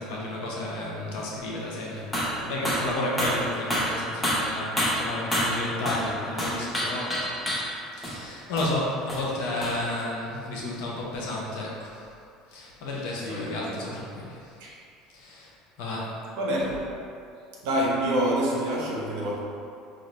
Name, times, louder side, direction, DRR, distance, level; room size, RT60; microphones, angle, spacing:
voice 1, 0.0-2.1 2.4-7.2 7.9-12.0 12.5-14.5 15.1-15.5 15.8-16.1, left 1 dB, 60° left, -3 dB, 0.8 m, -32 dB
sound 1, 2.1-2.4 2.6-2.9 3.2-6.1 6.4-7.8 8.0-8.2 8.6-8.7 9.1-9.3 9.6-9.8, equal, 15° left, 0.8 m, -28 dB
voice 2, 13.2-13.9 14.6-14.8 16.4-16.9 17.6-19.4, right 1 dB, 65° right, -3 dB, 0.8 m, -27 dB
5.0 x 2.5 x 3.0 m, 2.5 s
figure-of-eight pair, 65°, 0 cm